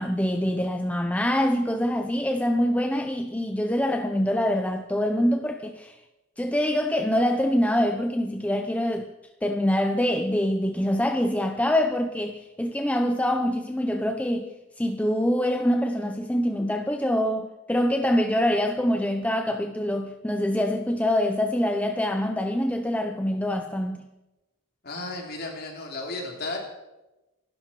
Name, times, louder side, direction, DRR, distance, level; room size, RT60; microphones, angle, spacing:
voice 1, 0.0-6.0 6.4-9.1 9.4-14.5 14.8-24.0, equal, 5° left, 0.6 m, -25 dB
voice 2, 24.8-26.6, left 2 dB, 45° left, 3.6 m, -34 dB
26.0 x 12.0 x 4.5 m
head